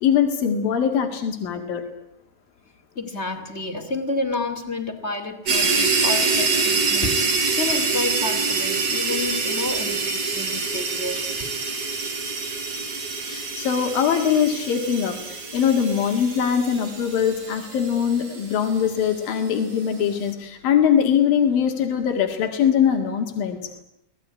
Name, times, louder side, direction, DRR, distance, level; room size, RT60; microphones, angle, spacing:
voice 1, 0.0-1.8 13.3-23.6, left 8 dB, 90° left, 4 dB, 3.7 m, -22 dB
voice 2, 3.0-11.5, left 2 dB, 20° left, 6 dB, 2.2 m, -30 dB
sound 1, 5.5-19.1, right 4 dB, 50° right, 5.2 m, -25 dB
25.0 x 18.5 x 9.7 m, 0.84 s
omnidirectional pair, 3.9 m